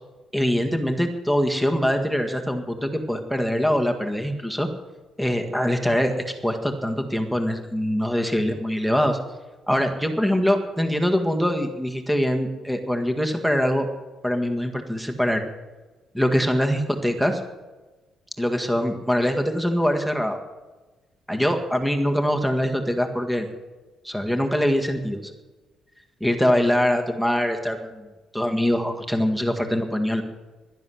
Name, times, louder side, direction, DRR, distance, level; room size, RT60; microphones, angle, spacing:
voice 1, 0.3-4.7 5.2-6.1 6.4-9.2 9.7-13.9 14.2-15.4 16.1-17.4 18.4-20.4 21.3-23.5 24.0-25.3 26.2-28.0 28.3-30.2, equal, 5° right, 5 dB, 1.7 m, -23 dB
11.5 x 10.5 x 7.8 m, 1.2 s
cardioid pair, 90°, 0 cm